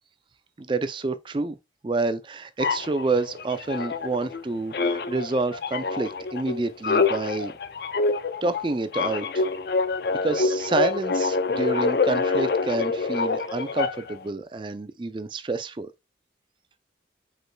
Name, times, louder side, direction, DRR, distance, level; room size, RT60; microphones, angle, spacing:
voice 1, 0.6-1.6 1.8-7.5 8.4-9.4 10.2-15.9, right 3 dB, 25° right, 0.4 m, -28 dB
sound 1, 2.6-4.4 4.7-14.2, left 4 dB, 55° left, 0.4 m, -26 dB
5.1 x 4.6 x 2.2 m
head